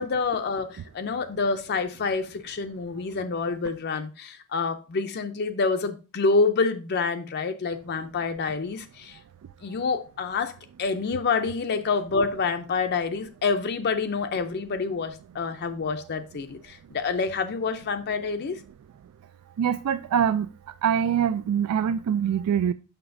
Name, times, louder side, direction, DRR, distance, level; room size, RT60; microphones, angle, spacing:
voice 1, 0.0-9.2 9.6-18.6, left 4 dB, 45° left, 0.4 m, -27 dB
voice 2, 19.6-20.5 20.8-22.7, right 8 dB, 85° right, 0.3 m, -24 dB
6.8 x 5.8 x 2.6 m
head